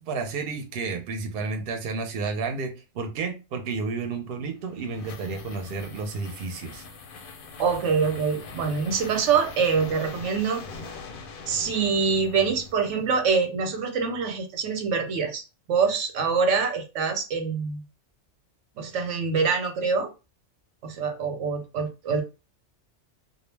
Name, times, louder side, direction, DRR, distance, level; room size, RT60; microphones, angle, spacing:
voice 1, 0.0-6.8, right 4 dB, 60° right, 5 dB, 0.8 m, -31 dB
sound 1, 4.4-13.2, left 4 dB, 60° left, 0.6 m, -42 dB
voice 2, 7.6-10.6 11.5-15.4 15.7-17.8 18.8-20.1 20.8-22.2, right 5 dB, 85° right, 5 dB, 0.9 m, -25 dB
2.3 x 2.0 x 3.1 m, 0.29 s
omnidirectional pair, 1.2 m